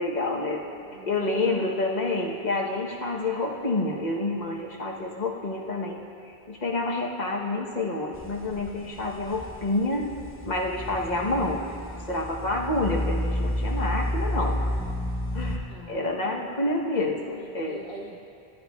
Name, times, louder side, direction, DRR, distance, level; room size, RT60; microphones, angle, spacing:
voice 1, 0.0-0.7 1.0-6.0 6.3-10.1 10.4-11.6 11.9-14.6 15.3-17.8, left 2 dB, 45° left, -1 dB, 1.1 m, -28 dB
voice 2, 0.7-1.7 15.7-16.4 17.3-18.2, right 1 dB, 60° left, -10 dB, 1.8 m, -44 dB
sound 1, 8.1-15.6, left 1 dB, 15° left, 0.7 m, -31 dB
17.0 x 12.0 x 2.3 m, 2.6 s
omnidirectional pair, 1.1 m